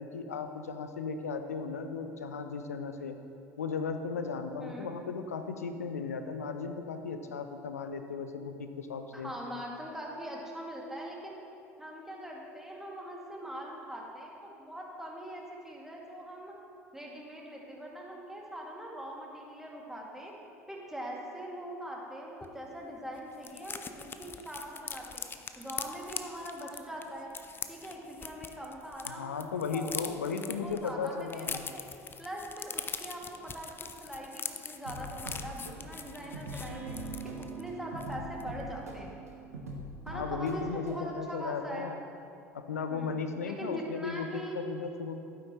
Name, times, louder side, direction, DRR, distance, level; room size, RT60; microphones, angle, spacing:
voice 1, 0.0-3.2 3.6-9.3 29.0-31.6 40.1-42.0 42.5-45.2, left 5 dB, 85° left, 8 dB, 0.6 m, -36 dB
voice 2, 4.6-5.0 9.1-11.4 11.8-14.3 14.6-16.5 16.9-20.3 20.7-25.2 25.6-27.3 27.7-30.3 30.6-31.8 32.2-39.2 40.0-41.9 42.9-44.6, equal, 5° right, -3 dB, 2.1 m, -42 dB
sound 1, 22.4-22.5 22.8-22.9 23.1-29.1 29.4-37.6 38.0-38.1 38.4-38.7, left 5 dB, 25° left, 0.6 m, -42 dB
sound 2, 34.8-41.0, right 2 dB, 90° right, 1.1 m, -42 dB
12.0 x 9.3 x 3.0 m, 2.6 s
hypercardioid pair, 65°, 8 cm